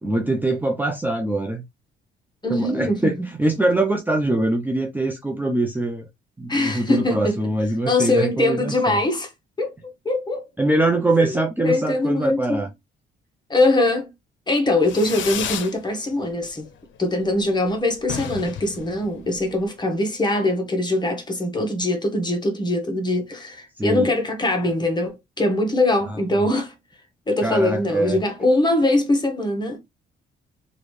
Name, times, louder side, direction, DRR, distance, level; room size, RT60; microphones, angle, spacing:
voice 1, 0.0-1.6 2.5-6.0 6.4-9.0 10.6-12.7 23.8-24.1 26.3-26.4 27.4-28.2, right 2 dB, 10° right, 0.5 m, -23 dB
voice 2, 2.4-3.3 6.5-7.4 7.9-9.3 9.6-10.5 11.2-11.4 11.6-12.6 13.5-14.1 14.5-16.7 17.0-26.7 27.3-29.8, left 2 dB, 20° left, 1.1 m, -22 dB
Fireworks, 14.8-15.8 16.1-16.7 17.0-17.1 17.3-17.4 17.7-17.8 18.0-19.6, left 9 dB, 70° left, 0.6 m, -32 dB
3.1 x 2.6 x 3.1 m
cardioid pair, 90°, 20 cm